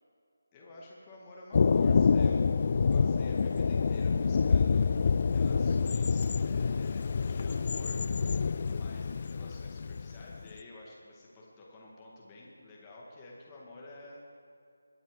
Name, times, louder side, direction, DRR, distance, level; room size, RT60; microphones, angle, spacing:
voice 1, 0.5-2.6 2.9-14.4, left 2 dB, 15° left, -4 dB, 2.1 m, -51 dB
Thunder, 1.5-10.5, left 5 dB, 40° left, 0.3 m, -27 dB
22.0 x 8.0 x 4.8 m, 2.4 s
figure-of-eight pair, 160°, 0 cm